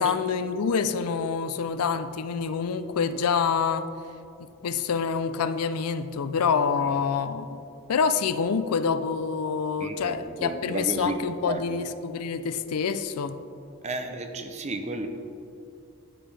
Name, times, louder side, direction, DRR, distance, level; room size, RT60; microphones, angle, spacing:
voice 1, 0.0-3.9 4.6-7.6 7.9-13.4, left 6 dB, 85° left, 12 dB, 0.4 m, -26 dB
voice 2, 9.8-11.2 11.5-11.8 13.8-15.1, right 2 dB, 30° right, 6 dB, 0.5 m, -33 dB
10.0 x 7.6 x 3.3 m, 2.7 s
head